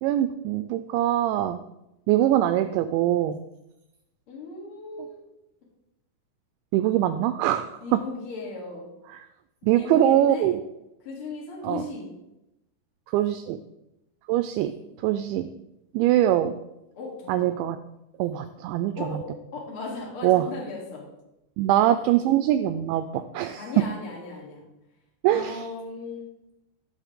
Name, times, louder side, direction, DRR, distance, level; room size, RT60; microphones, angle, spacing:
voice 1, 0.0-1.6 2.1-3.4 6.7-7.8 9.6-10.6 11.6-11.8 13.1-13.6 14.3-14.7 15.0-15.5 15.9-16.5 17.3-17.8 18.2-19.2 20.2-20.4 21.6-23.6 25.2-25.6, right 12 dB, 85° right, 9 dB, 2.6 m, -23 dB
voice 2, 4.3-5.2 7.8-8.9 9.6-10.5 11.0-12.1 16.9-17.5 19.0-19.2 19.5-21.0 23.5-24.6 25.3-26.2, left 3 dB, 35° left, -3 dB, 3.0 m, -37 dB
16.5 x 7.5 x 3.7 m, 0.89 s
omnidirectional pair, 5.7 m